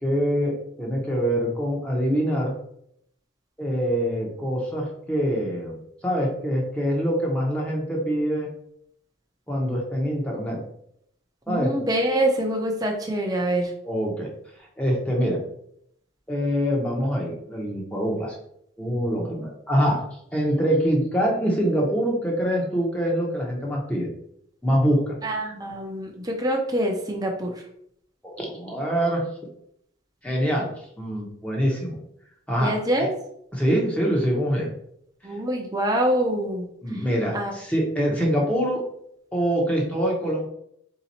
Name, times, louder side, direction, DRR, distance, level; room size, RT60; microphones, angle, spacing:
voice 1, 0.0-2.5 3.6-5.8 6.0-8.5 9.5-10.6 11.5-11.7 13.8-14.3 14.8-15.4 16.3-18.4 18.8-20.0 20.3-24.1 24.6-25.2 28.2-29.2 30.2-30.7 31.0-32.0 32.5-32.7 33.5-34.7 36.8-38.8 39.3-40.5, equal, 5° left, -2 dB, 0.9 m, -24 dB
voice 2, 11.5-13.7 25.2-27.5 32.6-33.1 35.2-36.6 36.9-37.0 37.3-37.5, right 1 dB, 20° right, 1 dB, 0.6 m, -25 dB
4.1 x 2.9 x 4.1 m, 0.71 s
head